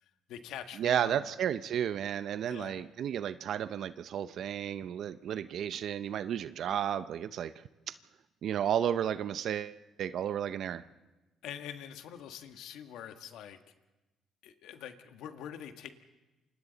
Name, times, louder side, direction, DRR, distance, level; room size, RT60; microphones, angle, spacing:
voice 1, 0.0-1.3 2.5-2.8 11.4-13.6 14.4-15.9, left 9 dB, 80° left, 7 dB, 1.5 m, -45 dB
voice 2, 0.8-7.5 8.4-10.8, right 9 dB, 65° right, 12 dB, 0.6 m, -32 dB
28.5 x 25.5 x 4.1 m, 1.1 s
cardioid pair, 105°, 0 cm